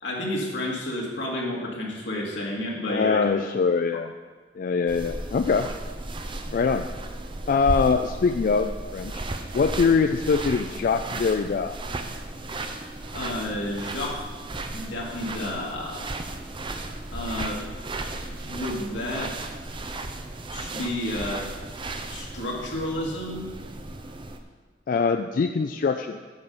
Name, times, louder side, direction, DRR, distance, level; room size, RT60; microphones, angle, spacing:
voice 1, 0.0-3.2 13.1-14.3 14.7-16.0 17.1-17.6 18.5-19.3 20.5-21.5 22.1-23.5, left 1 dB, 85° left, -2 dB, 2.0 m, -31 dB
voice 2, 2.9-4.1 4.6-5.7 6.5-6.9 7.5-9.2 9.5-11.8 24.9-26.2, left 5 dB, 50° left, 7 dB, 0.3 m, -23 dB
sound 1, 4.9-24.4, right 2 dB, 30° right, 0.6 m, -35 dB
8.8 x 6.6 x 5.4 m, 1.4 s
head